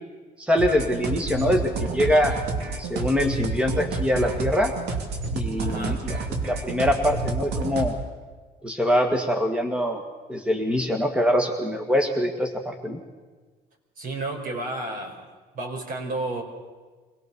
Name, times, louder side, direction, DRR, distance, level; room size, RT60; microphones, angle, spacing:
voice 1, 0.4-2.4 2.8-4.7 5.3-6.1 6.5-8.0 8.6-10.0 10.3-13.0, equal, 5° right, 4 dB, 1.9 m, -23 dB
sound 1, 0.6-7.9, right 3 dB, 75° right, 2.9 m, -29 dB
voice 2, 5.6-6.0 14.0-15.3 15.5-16.4, right 2 dB, 55° right, 2 dB, 4.8 m, -31 dB
24.0 x 18.0 x 6.9 m, 1.4 s
cardioid pair, 110°, 17 cm